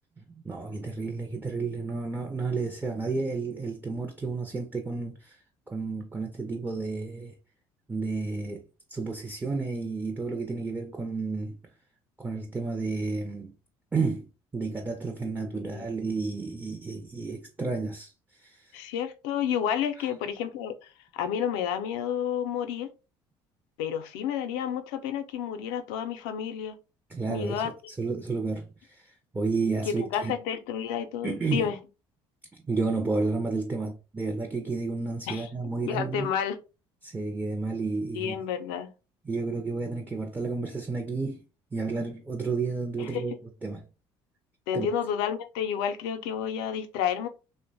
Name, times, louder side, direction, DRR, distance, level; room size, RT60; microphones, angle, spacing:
voice 1, 0.2-5.4 5.7-7.3 7.9-8.6 8.9-11.6 12.2-13.5 13.9-18.8 20.0-20.1 27.1-30.3 31.2-31.7 32.7-36.3 37.0-38.4 39.3-41.4 41.7-43.3 43.6-43.8 44.7-44.9, right 3 dB, 15° right, 0.5 m, -31 dB
voice 2, 15.4-15.9 18.7-22.9 23.8-26.8 27.3-27.7 29.9-31.8 35.3-35.5 35.9-36.6 38.1-38.9 43.0-43.2 44.7-47.3, left 8 dB, 90° left, 0.4 m, -30 dB
2.9 x 2.1 x 2.6 m
supercardioid pair, 85°, 11 cm